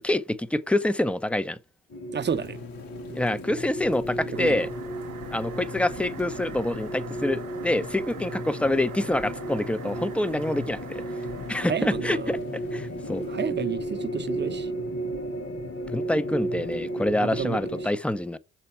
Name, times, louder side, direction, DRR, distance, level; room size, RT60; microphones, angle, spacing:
voice 1, 0.0-1.6 3.1-4.7 5.3-11.0 11.5-12.4 12.7-13.2 15.9-18.4, left 1 dB, 5° left, 0.6 m, -26 dB
sound 1, 1.9-17.9, right 1 dB, 35° left, 1.4 m, -34 dB
voice 2, 2.1-2.6 4.3-4.6 11.7-12.4 13.1-14.7 17.2-17.6, right 7 dB, 30° right, 0.8 m, -30 dB
Thunder / Rain, 2.2-13.4, left 6 dB, 65° left, 1.9 m, -50 dB
sound 2, 4.3-11.8, right 10 dB, 55° right, 1.0 m, -43 dB
6.7 x 4.5 x 4.3 m
hypercardioid pair, 55°, 37 cm